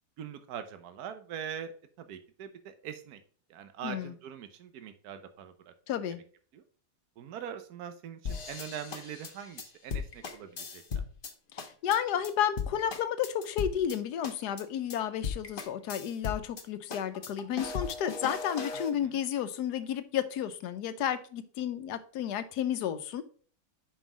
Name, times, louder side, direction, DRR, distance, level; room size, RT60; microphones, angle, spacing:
voice 1, 0.2-3.2 3.5-5.7 6.5-6.6 7.2-11.0 19.0-19.1, right 8 dB, 75° right, 9 dB, 1.3 m, -42 dB
voice 2, 3.8-4.1 5.9-6.2 11.5-23.2, left 9 dB, 90° left, 11 dB, 1.3 m, -32 dB
sound 1, 8.2-11.3 11.6-12.0 12.2-12.3 12.6-14.0 14.2-14.6 14.9-15.0 15.2-16.6 16.9-18.9, left 6 dB, 40° left, 1.0 m, -37 dB
5.5 x 5.1 x 4.9 m, 0.43 s
omnidirectional pair, 1.7 m